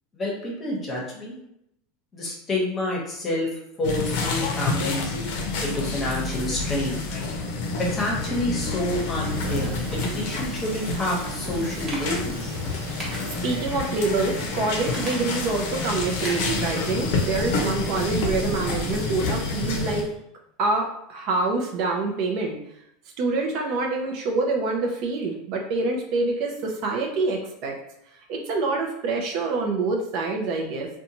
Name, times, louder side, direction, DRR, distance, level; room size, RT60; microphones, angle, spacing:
voice 1, 0.1-1.4 2.1-3.5 3.8-5.2 5.5-7.3 7.8-12.5, left 1 dB, 20° left, -3 dB, 0.9 m, -28 dB
sound 1, 3.8-20.0, left 3 dB, 65° left, 0.5 m, -29 dB
Thunder / Rain, 9.0-20.1, right 2 dB, 90° right, 1.0 m, -37 dB
sound 2, 11.9-12.2 13.0-13.6 14.0-14.1 14.8-15.6 16.2-16.6 16.9-17.0, right 1 dB, 20° right, 0.9 m, -37 dB
voice 2, 13.4-20.1 20.6-22.6 23.2-27.7 28.3-30.9, right 3 dB, 55° right, 1 dB, 0.5 m, -26 dB
2.5 x 2.2 x 2.8 m, 0.78 s
supercardioid pair, 140°, 0 cm